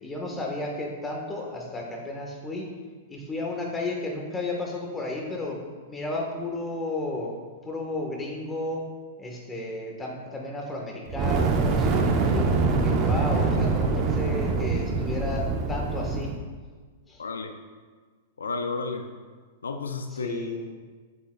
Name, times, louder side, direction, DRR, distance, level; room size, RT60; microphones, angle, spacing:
voice 1, 0.0-2.7 3.1-5.6 5.9-7.4 7.6-8.8 9.2-16.3 17.1-17.2 20.1-20.6, left 2 dB, 15° left, 0 dB, 1.4 m, -33 dB
Fire, 11.1-16.4, right 3 dB, 35° right, 0.8 m, -24 dB
voice 2, 17.2-17.5 18.4-19.1 19.6-20.7, left 4 dB, 90° left, 6 dB, 0.5 m, -32 dB
7.9 x 6.3 x 2.3 m, 1.5 s
hypercardioid pair, 115°, 0 cm